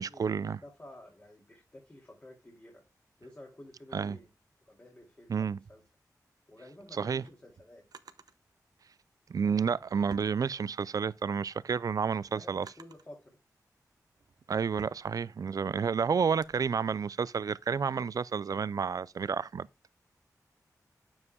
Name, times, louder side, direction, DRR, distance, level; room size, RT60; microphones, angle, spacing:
voice 1, 0.0-0.6 3.9-4.2 5.3-5.6 6.9-7.2 9.3-12.7 14.5-19.7, right 6 dB, 60° right, 0.4 m, -30 dB
voice 2, 0.6-2.8 3.2-4.3 4.6-5.8 6.5-7.8 12.0-13.4, left 1 dB, 30° left, 2.5 m, -52 dB
Drawer open or close, 6.9-8.4 9.4-11.0 11.5-13.2 13.8-16.6, right 5 dB, 75° right, 0.7 m, -54 dB
9.6 x 7.3 x 2.2 m
wide cardioid pair, 70°, 7 cm